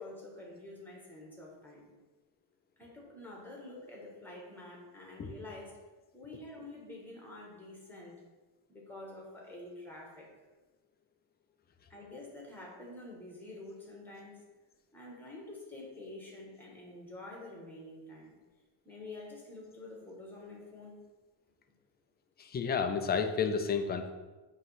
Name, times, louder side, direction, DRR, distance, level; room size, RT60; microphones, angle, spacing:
voice 1, 0.0-1.8 2.8-5.8 6.1-8.2 8.7-10.3 11.9-14.4 14.9-18.3 18.8-21.0, left 2 dB, 5° left, -2 dB, 1.4 m, -48 dB
voice 2, 22.4-24.1, left 6 dB, 25° left, 6 dB, 0.3 m, -31 dB
7.8 x 3.2 x 5.6 m, 1.2 s
cardioid pair, 160°, 47 cm